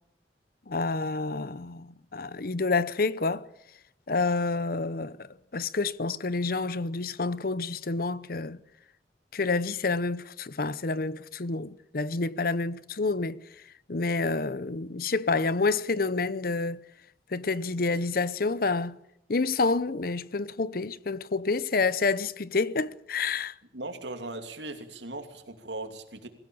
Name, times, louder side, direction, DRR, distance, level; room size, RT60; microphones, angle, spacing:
voice 1, 0.7-3.5 4.1-8.6 9.3-13.4 13.9-16.8 17.3-19.0 19.3-23.5, left 3 dB, 55° left, 0.8 m, -28 dB
voice 2, 23.7-26.3, right 2 dB, 85° right, 2.8 m, -38 dB
23.5 x 16.0 x 8.8 m
head